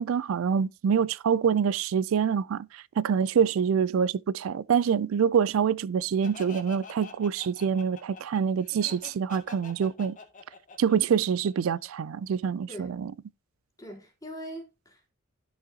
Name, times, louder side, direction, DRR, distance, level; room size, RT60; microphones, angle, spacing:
voice 1, 0.0-10.2 10.8-13.1, right 7 dB, 75° right, 0.4 m, -26 dB
Laughter, 6.2-11.9, left 4 dB, 40° left, 2.1 m, -46 dB
voice 2, 13.8-15.1, equal, 15° left, 3.4 m, -42 dB
14.0 x 6.2 x 2.8 m
head